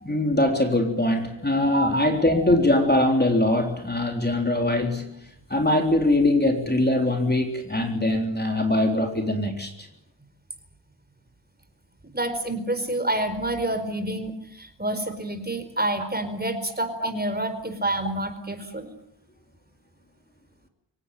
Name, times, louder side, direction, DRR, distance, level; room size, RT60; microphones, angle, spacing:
voice 1, 0.0-5.1 5.5-9.9, left 1 dB, 20° left, 3 dB, 3.7 m, -22 dB
voice 2, 1.6-2.5 12.1-18.9, right 1 dB, 20° right, 8 dB, 4.5 m, -28 dB
24.5 x 18.0 x 9.2 m, 0.79 s
wide cardioid pair, 70°, 45 cm